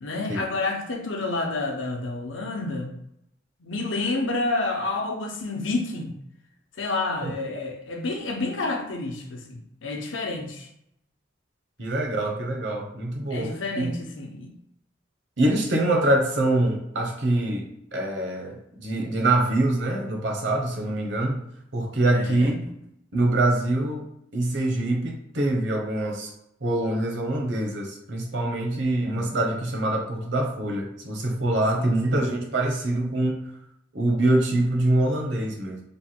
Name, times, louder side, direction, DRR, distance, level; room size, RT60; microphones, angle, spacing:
voice 1, 0.0-2.9 3.6-6.1 6.8-10.7 13.3-14.5 22.1-22.6 28.7-28.9 31.8-31.9, left 2 dB, 85° left, 2 dB, 0.7 m, -29 dB
voice 2, 11.8-14.0 15.4-21.4 21.7-22.5 23.1-24.0 24.3-26.3 26.6-33.4 33.9-35.8, right 1 dB, 70° right, 0 dB, 0.9 m, -24 dB
3.4 x 2.2 x 4.2 m, 0.78 s
head